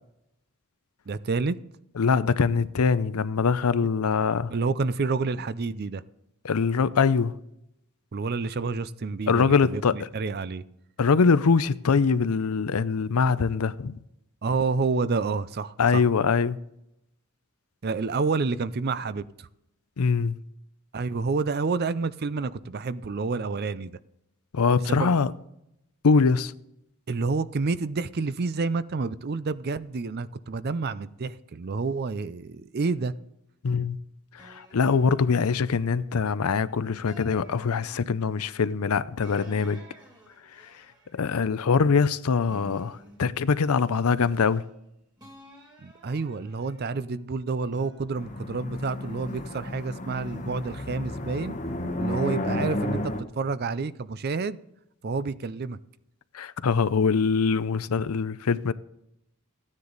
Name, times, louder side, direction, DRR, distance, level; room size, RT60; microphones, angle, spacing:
voice 1, 1.1-1.6 4.5-6.0 8.1-10.6 14.4-16.0 17.8-19.5 20.9-24.0 24.9-25.1 27.1-33.1 45.8-51.5 52.0-54.6 55.0-55.8, right 4 dB, 45° right, 0.5 m, -29 dB
voice 2, 2.0-4.5 6.4-7.3 9.3-10.0 11.0-14.0 15.8-16.6 20.0-20.4 24.5-25.3 26.0-26.5 33.6-34.0 34.3-39.8 41.1-44.6 56.3-58.7, left 5 dB, 80° left, 0.5 m, -23 dB
sound 1, 34.4-36.5 37.1-38.4 39.2-42.2 42.5-44.8 45.2-47.2 47.7-49.6 50.2-51.4, right 1 dB, 20° right, 2.5 m, -52 dB
sound 2, 48.2-53.2, left 1 dB, 35° left, 1.0 m, -32 dB
15.0 x 9.8 x 4.0 m
head